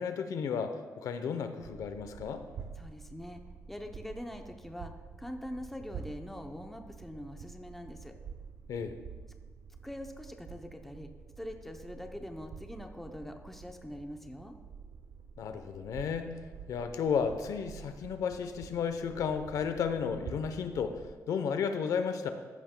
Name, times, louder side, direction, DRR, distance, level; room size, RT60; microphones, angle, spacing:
voice 1, 0.0-2.4 8.7-9.0 15.4-16.3 16.7-22.3, left 6 dB, 70° left, 8 dB, 0.7 m, -33 dB
sound 1, 1.6-21.1, right 6 dB, 70° right, 0.6 m, -48 dB
voice 2, 2.8-3.4 3.7-8.2 9.8-11.1 11.4-14.6, left 1 dB, 5° left, 4 dB, 0.6 m, -43 dB
14.0 x 10.5 x 2.2 m, 1.5 s
wide cardioid pair, 165°, 6 cm